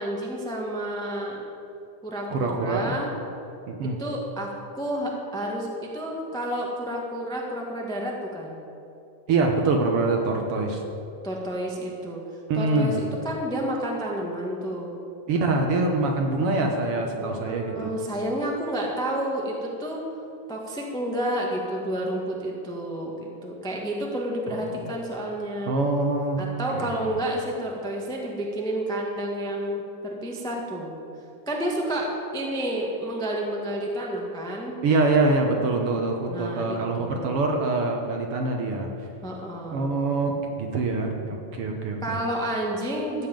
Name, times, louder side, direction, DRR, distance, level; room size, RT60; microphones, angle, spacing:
voice 1, 0.0-1.4 2.0-3.1 4.0-8.5 11.2-12.2 12.5-14.9 17.2-20.0 20.5-25.7 26.4-30.9 31.5-34.7 36.3-37.3 39.2-39.9 42.0-43.3, right 1 dB, 5° left, -1 dB, 0.6 m, -30 dB
voice 2, 2.3-2.9 3.7-4.0 9.3-10.8 12.5-13.0 15.3-17.9 24.5-24.9 25.7-26.4 26.7-27.1 34.8-38.9 39.7-42.2, right 3 dB, 60° right, 2 dB, 1.7 m, -25 dB
14.5 x 5.7 x 8.8 m, 2.7 s
omnidirectional pair, 3.3 m